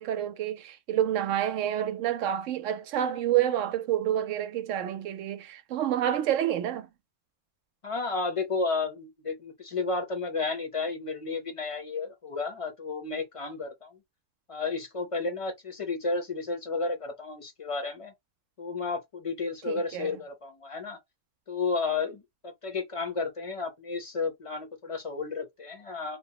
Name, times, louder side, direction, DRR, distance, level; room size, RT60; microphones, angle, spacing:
voice 1, 0.0-6.9 19.7-20.2, right 11 dB, 80° right, 0.9 m, -28 dB
voice 2, 7.8-14.0 14.5-18.1 18.6-21.0 21.5-26.2, left 4 dB, 30° left, 0.7 m, -32 dB
2.9 x 2.0 x 2.8 m
omnidirectional pair, 1.3 m